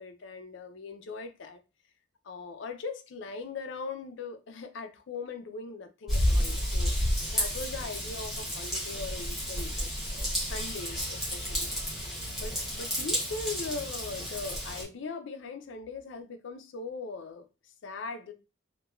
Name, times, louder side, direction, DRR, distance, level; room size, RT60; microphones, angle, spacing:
voice 1, 0.0-1.6 2.2-6.9 7.3-11.7 12.3-18.3, left 4 dB, 75° left, 0.4 m, -40 dB
Raindrop / Vehicle horn car horn honking / Trickle dribble, 6.1-14.8, equal, ahead, 0.9 m, -31 dB
2.9 x 2.2 x 2.3 m
head